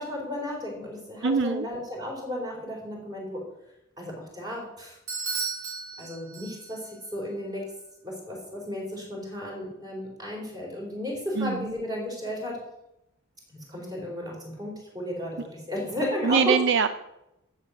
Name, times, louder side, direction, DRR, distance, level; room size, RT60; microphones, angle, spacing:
voice 1, 0.0-3.4 4.0-5.0 6.0-7.6 8.0-12.6 13.5-16.5, left 1 dB, 20° right, -2 dB, 4.1 m, -34 dB
voice 2, 1.2-1.7 11.4-11.7 16.2-16.9, right 5 dB, 55° right, 11 dB, 0.5 m, -23 dB
Bell / Doorbell, 5.1-6.9, right 5 dB, 80° right, 4.5 m, -34 dB
12.0 x 8.1 x 6.3 m, 0.88 s
head